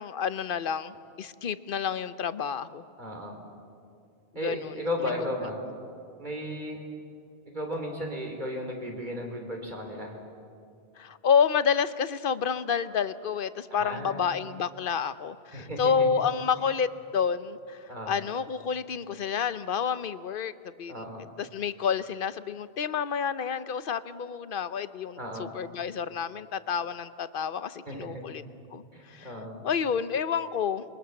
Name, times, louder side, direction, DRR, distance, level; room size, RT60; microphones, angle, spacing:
voice 1, 0.0-2.8 4.4-4.7 11.0-20.5 20.8-21.0 21.4-28.4 28.7-29.3 29.6-30.8, left 7 dB, 60° left, 13 dB, 0.9 m, -29 dB
voice 2, 3.0-3.4 4.3-5.6 6.2-6.8 7.5-10.2 13.7-14.3 15.5-16.2 17.9-18.2 20.9-21.3 25.2-25.5 27.9-28.4 28.9-29.7, left 1 dB, 45° right, 2 dB, 4.0 m, -35 dB
28.0 x 23.0 x 7.1 m, 2.4 s
omnidirectional pair, 1.1 m